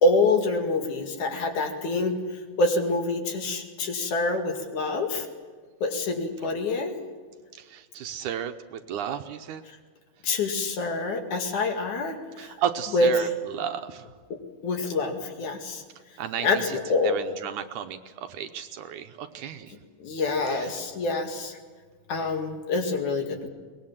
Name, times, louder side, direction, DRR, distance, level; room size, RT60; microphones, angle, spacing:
voice 1, 0.0-2.2 2.6-5.3 5.8-7.0 10.2-12.5 12.9-13.3 14.3-15.8 16.4-17.2 20.0-21.6 22.1-23.5, left 2 dB, 65° left, 3 dB, 3.6 m, -26 dB
voice 2, 7.7-9.6 12.4-14.1 16.2-16.6 17.0-19.7 20.5-20.7, right 9 dB, 75° right, 8 dB, 2.2 m, -33 dB
23.0 x 20.5 x 7.4 m, 1.5 s
omnidirectional pair, 3.9 m